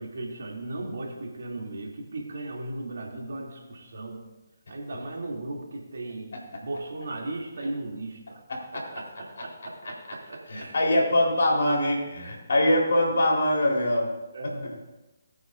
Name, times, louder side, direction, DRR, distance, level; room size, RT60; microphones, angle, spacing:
voice 1, 0.0-4.2 4.7-6.3 6.6-8.4 8.7-10.8 14.3-14.7, right 2 dB, 60° right, -1 dB, 2.6 m, -36 dB
voice 2, 8.5-8.8 10.5-14.1 14.4-14.5, left 1 dB, 60° left, -1 dB, 3.8 m, -23 dB
20.0 x 9.2 x 2.5 m, 1.0 s
figure-of-eight pair, 140°, 0 cm